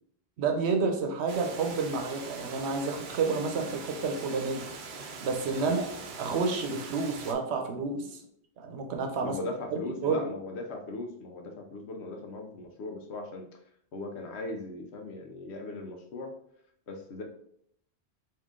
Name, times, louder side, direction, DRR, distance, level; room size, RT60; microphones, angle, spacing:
voice 1, 0.4-4.7 5.2-5.9 6.2-8.2 8.6-9.4 9.7-10.3, right 4 dB, 75° right, 4 dB, 1.0 m, -30 dB
Water, 1.3-7.3, right 4 dB, 55° right, 0.6 m, -42 dB
voice 2, 5.5-6.0 9.2-13.6 13.9-16.3 16.9-17.2, left 2 dB, 75° left, 3 dB, 1.0 m, -39 dB
3.8 x 2.7 x 3.6 m, 0.68 s
omnidirectional pair, 1.1 m